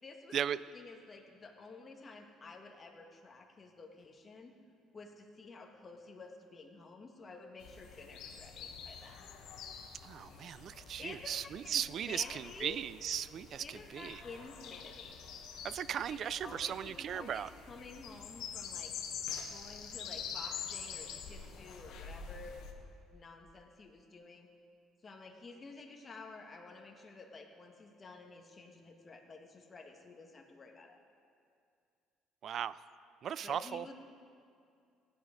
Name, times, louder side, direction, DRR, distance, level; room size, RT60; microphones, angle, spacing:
voice 1, 0.0-4.5 4.9-9.3 11.0-11.4 11.6-12.8 13.6-15.2 15.9-18.9 19.5-22.6 23.1-24.5 25.0-31.0 33.4-33.9, left 3 dB, 30° left, 2 dB, 1.5 m, -51 dB
sound 1, 7.6-22.7, left 7 dB, 75° left, 1.3 m, -46 dB
voice 2, 10.0-14.2 15.6-17.5 32.4-32.8 33.2-33.9, right 9 dB, 55° right, 17 dB, 0.3 m, -37 dB
15.5 x 9.5 x 5.0 m, 2.4 s
cardioid pair, 105°, 0 cm